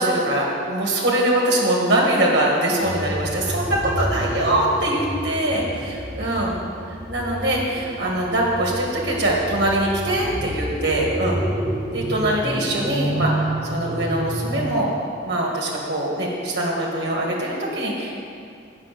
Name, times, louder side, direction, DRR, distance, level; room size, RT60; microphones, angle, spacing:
voice 1, 0.0-6.6 7.1-11.4 11.9-14.9 15.2-18.2, right 1 dB, 55° right, -3 dB, 1.9 m, -22 dB
sound 1, 2.8-15.0, right 1 dB, 10° right, 1.8 m, -29 dB
8.8 x 6.0 x 7.7 m, 2.3 s
head